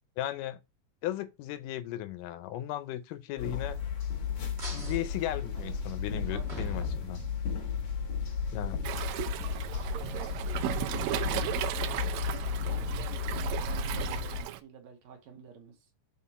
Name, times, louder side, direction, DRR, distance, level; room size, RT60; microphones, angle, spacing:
voice 1, 0.2-0.6 1.0-3.8 4.7-7.2 8.5-8.8, left 13 dB, 85° left, 2.2 m, -36 dB
sound 1, 3.4-14.4, left 5 dB, 60° left, 2.6 m, -34 dB
sound 2, 4.6-7.8, right 4 dB, 25° right, 1.6 m, -44 dB
voice 2, 5.6-6.5 8.6-15.9, right 7 dB, 70° right, 2.1 m, -49 dB
Waves surf, 8.8-14.6, right 13 dB, 90° right, 1.6 m, -36 dB
5.7 x 4.3 x 4.1 m
omnidirectional pair, 3.7 m